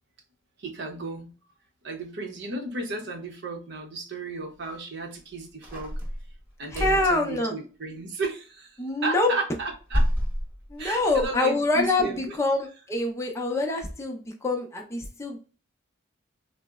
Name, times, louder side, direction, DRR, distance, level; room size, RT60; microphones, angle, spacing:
voice 1, 0.6-1.3 1.8-5.9 6.6-10.1 10.8-12.3, right 2 dB, 65° right, 3 dB, 0.7 m, -34 dB
sound 1, 5.6-7.2 9.6-11.3, equal, 10° right, 0.9 m, -28 dB
voice 2, 6.7-7.5 8.8-9.3 10.7-15.4, left 2 dB, 15° left, 1 dB, 0.5 m, -25 dB
3.8 x 2.0 x 2.3 m, 0.36 s
head